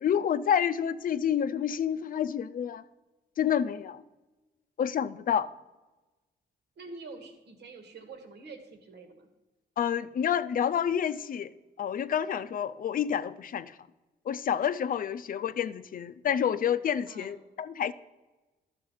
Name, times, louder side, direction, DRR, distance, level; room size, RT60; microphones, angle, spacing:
voice 1, 0.0-2.8 3.4-4.0 4.8-5.5 9.8-11.5 11.8-13.7 14.3-17.9, left 8 dB, 55° left, 13 dB, 0.5 m, -29 dB
voice 2, 6.8-9.3 15.1-15.2 17.0-17.4, right 3 dB, 75° right, 6 dB, 1.8 m, -46 dB
12.0 x 6.8 x 5.6 m, 1.1 s
cardioid pair, 100°, 17 cm